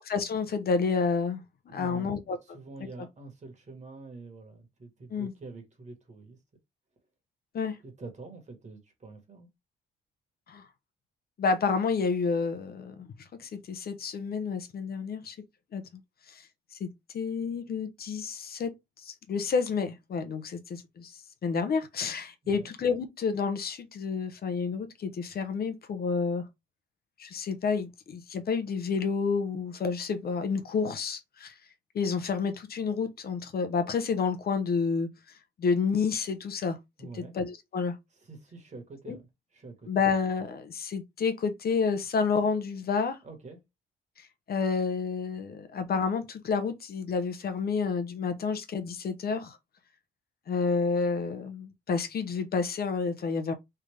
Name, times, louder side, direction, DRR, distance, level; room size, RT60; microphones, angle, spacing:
voice 1, 0.1-1.4 1.7-2.4 5.1-5.3 7.5-7.8 10.5-10.6 11.4-13.1 13.4-15.4 15.7-15.8 16.3-16.5 16.7-18.7 19.0-26.4 27.2-31.5 31.9-35.1 35.6-36.8 37.2-38.0 39.1-39.2 39.9-43.2 44.2-49.6 50.5-53.5, left 5 dB, 50° left, 0.7 m, -29 dB
voice 2, 1.7-6.4 7.8-9.5 22.4-22.7 37.0-37.4 38.2-39.9 43.2-43.6, right 3 dB, 35° right, 1.5 m, -46 dB
3.4 x 2.5 x 3.3 m
cardioid pair, 90°, 20 cm